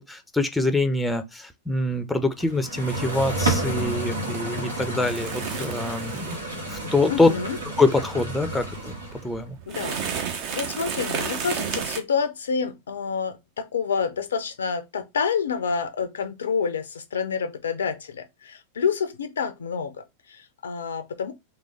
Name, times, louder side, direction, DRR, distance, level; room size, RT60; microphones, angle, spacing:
voice 1, 0.0-7.3 7.8-8.9 9.2-9.6, left 2 dB, 5° left, 0.6 m, -24 dB
sound 1, 2.4-9.4, right 1 dB, 75° right, 1.4 m, -31 dB
sound 2, 5.0-12.0, right 6 dB, 45° right, 0.8 m, -33 dB
voice 2, 7.1-7.6 9.7-21.3, left 6 dB, 65° left, 0.5 m, -28 dB
3.9 x 3.2 x 3.2 m
figure-of-eight pair, 90°, 0 cm